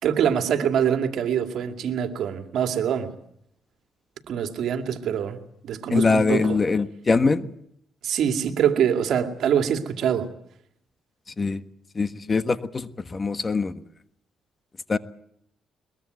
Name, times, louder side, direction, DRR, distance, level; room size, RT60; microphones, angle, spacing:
voice 1, 0.0-3.1 4.3-5.4 5.6-6.6 8.0-10.3, right 8 dB, 70° right, 2.4 m, -24 dB
voice 2, 5.9-7.5 11.4-11.6 11.9-13.7 14.9-15.0, left 4 dB, 30° left, 1.4 m, -23 dB
22.0 x 22.0 x 8.0 m
cardioid pair, 90°, 0 cm